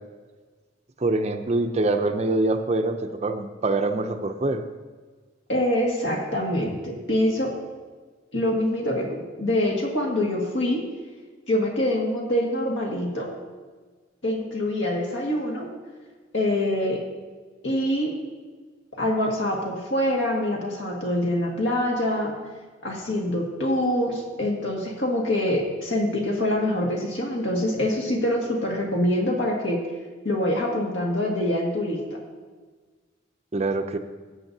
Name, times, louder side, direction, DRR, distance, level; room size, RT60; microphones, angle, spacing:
voice 1, 1.0-4.6 33.5-34.0, right 2 dB, 35° right, 7 dB, 0.5 m, -24 dB
voice 2, 5.5-7.5 8.3-10.8 11.5-13.3 14.2-15.7 16.3-17.0 17.6-18.1 18.9-22.4 22.8-29.8 30.2-32.2, left 1 dB, 75° left, -1 dB, 1.8 m, -25 dB
14.5 x 7.9 x 2.7 m, 1.4 s
head